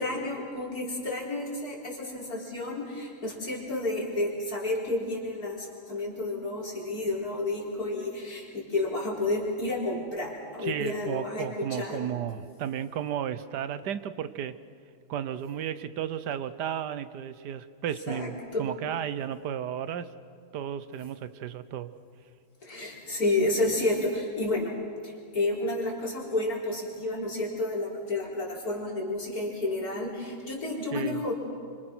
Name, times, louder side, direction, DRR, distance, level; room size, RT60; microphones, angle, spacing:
voice 1, 0.0-12.1 18.1-18.7 22.6-24.8 25.0-31.3, left 2 dB, 60° left, -3 dB, 4.7 m, -31 dB
voice 2, 10.6-14.6 15.1-20.1 20.5-21.9 30.9-31.2, right 9 dB, 90° right, 13 dB, 1.5 m, -33 dB
27.0 x 25.0 x 6.1 m, 2.3 s
omnidirectional pair, 1.7 m